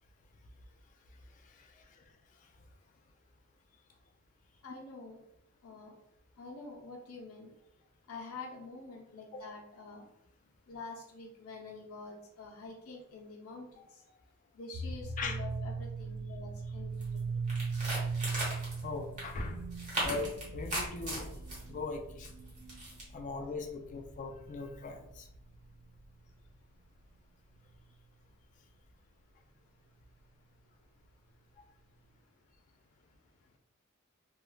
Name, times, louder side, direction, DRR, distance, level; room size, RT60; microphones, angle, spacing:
voice 1, 1.4-2.0 9.3-9.4 13.8-13.9 15.2-15.4 18.8-19.7 20.0-21.4 21.7-22.3 23.1-25.3, left 3 dB, 35° left, 5 dB, 0.3 m, -40 dB
voice 2, 4.6-5.2 5.6-6.0 6.4-7.5 8.1-10.1 10.7-14.0 14.5-17.4, left 3 dB, 90° left, -1 dB, 0.7 m, -47 dB
sound 1, 14.7-26.0, right 4 dB, 90° right, 0.4 m, -39 dB
sound 2, 17.0-17.2 17.5-18.8 19.2-19.3 19.7-21.6 22.2-23.0, right 1 dB, 35° right, 1.0 m, -37 dB
3.0 x 2.1 x 2.3 m, 0.82 s
head